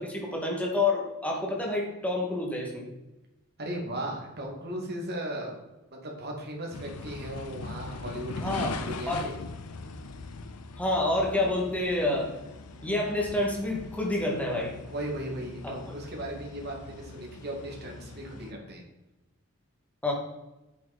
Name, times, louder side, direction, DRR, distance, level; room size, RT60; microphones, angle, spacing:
voice 1, 0.0-2.9 8.4-8.7 9.1-9.3 10.8-12.3 12.8-14.7 15.6-15.7 20.0-20.1, left 2 dB, 5° left, -1 dB, 2.3 m, -28 dB
voice 2, 3.6-5.6 5.9-9.4 14.9-18.8, right 1 dB, 45° right, 0 dB, 2.4 m, -37 dB
sound 1, 6.7-18.5, left 3 dB, 85° left, 0.7 m, -41 dB
8.7 x 8.0 x 4.4 m, 1.0 s
head